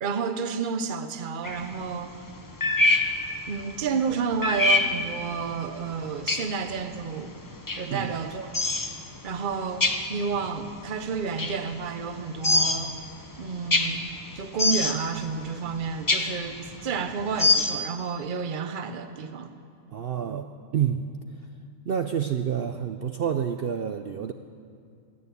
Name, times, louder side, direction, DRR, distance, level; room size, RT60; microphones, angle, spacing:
voice 1, 0.0-2.2 3.5-7.4 7.8-8.5 9.2-13.0 13.4-14.0 14.3-19.5, right 5 dB, 40° right, 9 dB, 0.9 m, -30 dB
sound 1, 1.4-17.8, left 2 dB, 20° left, 0.6 m, -25 dB
voice 2, 19.9-21.0 21.8-24.3, right 8 dB, 70° right, 7 dB, 0.5 m, -28 dB
17.5 x 9.7 x 8.3 m, 2.3 s
omnidirectional pair, 1.6 m